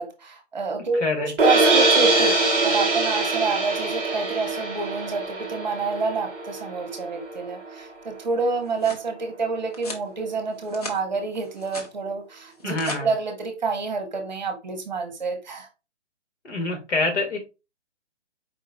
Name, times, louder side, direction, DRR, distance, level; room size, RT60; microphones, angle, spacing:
voice 1, 0.0-15.7, right 4 dB, 40° right, 0.9 m, -28 dB
sound 1, 1.4-7.5, right 2 dB, ahead, 0.6 m, -23 dB
sound 2, 8.4-9.1 9.7-10.1 10.5-11.0 11.4-11.9 12.5-13.0, left 2 dB, 35° left, 0.8 m, -38 dB
voice 2, 12.6-13.1 16.4-17.4, left 3 dB, 75° left, 1.9 m, -26 dB
4.6 x 2.2 x 3.9 m
hypercardioid pair, 170°, 35 cm